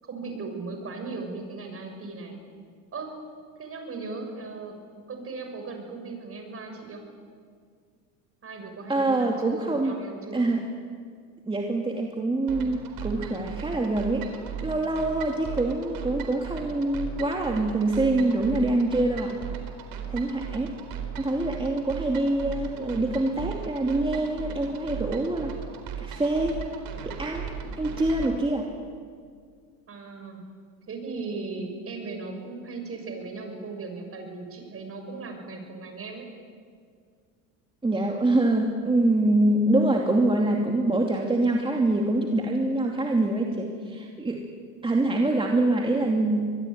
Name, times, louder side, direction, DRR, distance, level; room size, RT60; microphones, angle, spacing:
voice 1, 0.0-2.4 2.9-3.1 3.6-4.8 5.1-7.0 8.4-10.5 29.9-30.4 30.9-36.3, right 3 dB, 35° right, 4 dB, 6.6 m, -37 dB
voice 2, 8.9-9.9 10.3-10.7 11.5-14.3 14.6-19.4 20.1-20.7 21.2-25.6 26.0-26.7 27.0-27.5 27.8-28.7 37.8-44.4 44.8-46.6, right 2 dB, 10° right, 1 dB, 2.6 m, -25 dB
sound 1, 12.5-28.3, right 7 dB, 55° right, 4.3 m, -37 dB
24.5 x 21.5 x 9.5 m, 2.1 s
supercardioid pair, 105°, 40 cm